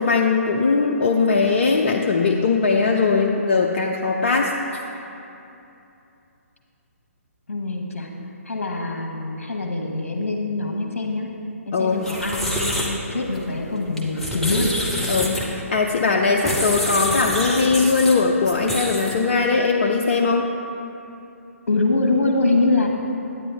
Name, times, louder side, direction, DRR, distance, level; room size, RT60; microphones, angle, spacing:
voice 1, 0.0-4.5 11.7-12.0 15.1-20.5, left 4 dB, 45° left, 0 dB, 0.6 m, -20 dB
voice 2, 7.5-8.1 8.4-11.3 11.6-14.7 21.7-22.9, left 2 dB, 65° left, 2 dB, 1.3 m, -24 dB
sound 1, 11.9-19.3, equal, 5° left, 0.8 m, -27 dB
9.9 x 9.1 x 3.4 m, 2.8 s
figure-of-eight pair, 135°, 8 cm